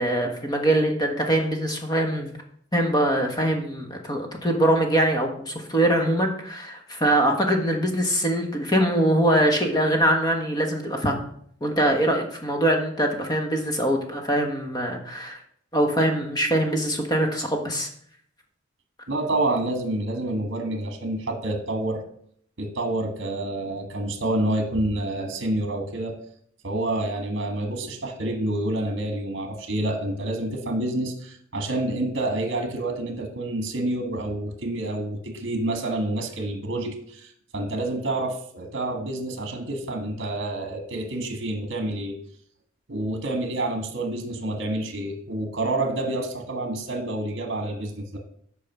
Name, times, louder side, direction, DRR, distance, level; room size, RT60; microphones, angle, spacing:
voice 1, 0.0-2.3 2.7-11.2 11.6-15.4 15.7-17.9, right 1 dB, 20° left, 3 dB, 1.3 m, -23 dB
voice 2, 19.1-22.0 22.6-26.2 26.6-42.2 42.9-48.2, right 1 dB, 65° right, 5 dB, 1.3 m, -28 dB
8.4 x 5.0 x 6.0 m, 0.64 s
head